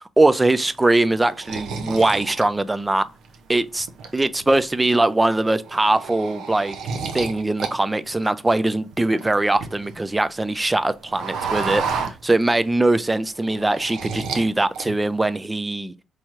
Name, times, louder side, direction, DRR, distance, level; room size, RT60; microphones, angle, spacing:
voice 1, 0.2-3.1 3.5-3.9 4.1-6.8 7.1-15.9, right 2 dB, 15° right, 0.3 m, -21 dB
sound 1, 0.6-3.4 3.8-4.5 4.9-5.1 5.4-7.7 8.0-10.1 10.4-12.7 13.1-14.5 14.7-15.4, right 5 dB, 80° right, 0.6 m, -31 dB
4.3 x 3.0 x 2.4 m
cardioid pair, 90°, 0 cm